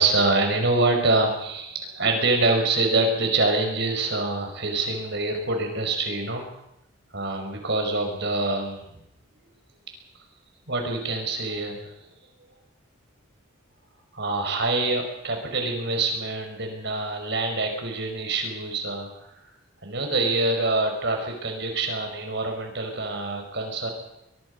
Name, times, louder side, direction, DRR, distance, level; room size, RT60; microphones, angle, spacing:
voice 1, 0.0-6.4 7.1-8.8 10.7-11.9 14.1-19.1 19.8-23.9, right 2 dB, 55° right, 4 dB, 5.1 m, -25 dB
23.0 x 22.5 x 5.4 m, 0.82 s
head